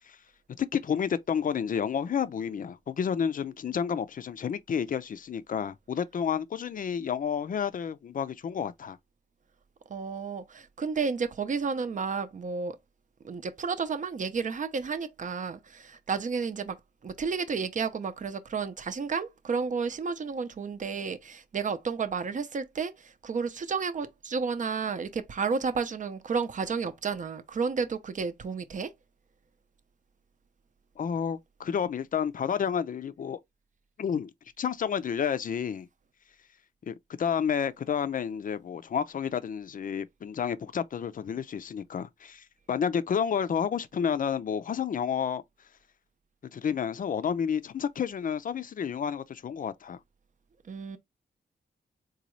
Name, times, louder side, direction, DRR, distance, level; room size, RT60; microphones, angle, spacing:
voice 1, 0.6-9.0 31.0-33.4 34.0-34.3 34.6-35.9 36.9-45.4 46.5-50.0, left 7 dB, 50° left, 0.4 m, -30 dB
voice 2, 9.9-12.8 13.2-16.8 17.0-28.9 50.7-51.0, right 5 dB, 45° right, 0.6 m, -32 dB
4.0 x 2.3 x 3.0 m
wide cardioid pair, 95°, 18 cm